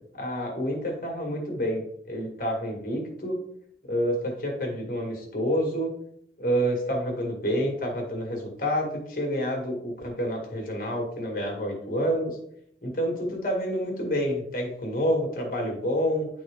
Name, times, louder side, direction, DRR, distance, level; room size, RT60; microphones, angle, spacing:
voice 1, 0.2-1.8 2.1-3.4 3.9-5.9 6.4-12.4 12.8-16.3, equal, 50° left, 0 dB, 1.7 m, -28 dB
10.0 x 4.0 x 3.5 m, 0.73 s
head